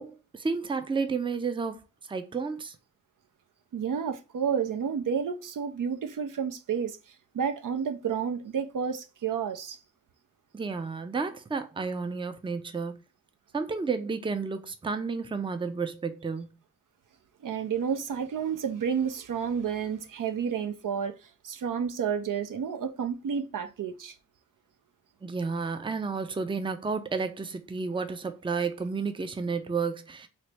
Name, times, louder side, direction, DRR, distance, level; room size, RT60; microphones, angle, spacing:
voice 1, 0.0-1.8 2.1-2.8 10.5-13.0 13.5-16.6 25.2-30.3, right 4 dB, 15° right, 0.5 m, -31 dB
voice 2, 3.7-7.0 7.3-9.8 17.4-21.1 21.4-24.2, right 7 dB, 70° right, 0.5 m, -30 dB
4.1 x 2.0 x 3.2 m
cardioid pair, 50°, 33 cm